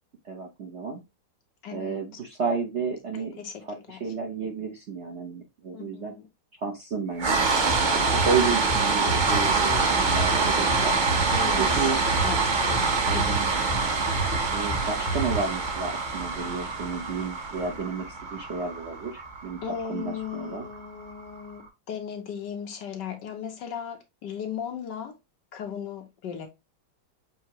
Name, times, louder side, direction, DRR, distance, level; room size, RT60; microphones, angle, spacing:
voice 1, 0.2-1.0 1.7-3.3 3.6-6.1 6.6-7.4 7.9-11.0 11.6-12.0 13.0-13.5 14.5-19.6 19.9-20.7, right 5 dB, 50° right, 0.8 m, -31 dB
voice 2, 1.6-2.0 3.1-3.5 3.9-4.0 5.7-6.2 11.3-11.9 12.2-13.3 19.6-21.6 21.9-25.1 25.5-26.5, left 8 dB, 65° left, 1.5 m, -36 dB
sound 1, 7.2-21.3, right 4 dB, 85° right, 0.4 m, -25 dB
sound 2, 7.4-15.4, right 2 dB, 35° left, 0.9 m, -31 dB
6.6 x 2.8 x 2.8 m
omnidirectional pair, 2.1 m